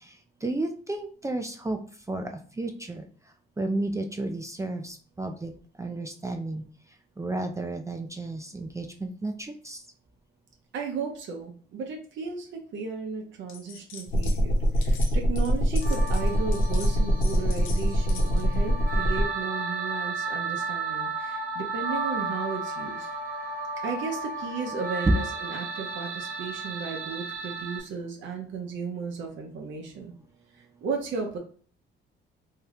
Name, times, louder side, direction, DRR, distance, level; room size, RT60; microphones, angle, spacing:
voice 1, 0.4-1.8 2.1-2.3 2.6-3.0 3.6-5.5 5.8-6.6 7.2-9.3 9.7-9.8, right 2 dB, 15° right, 4 dB, 0.4 m, -32 dB
voice 2, 10.7-23.1 23.8-30.1 30.5-31.4, right 5 dB, 75° right, 2 dB, 0.7 m, -35 dB
sound 1, 13.5-14.4 14.7-18.5, left 5 dB, 90° left, 0.6 m, -44 dB
sound 2, 14.1-19.2, equal, 50° left, 1.2 m, -24 dB
sound 3, 15.8-27.8, right 3 dB, 45° right, 0.9 m, -34 dB
2.8 x 2.3 x 3.3 m, 0.43 s
cardioid pair, 90°, 20 cm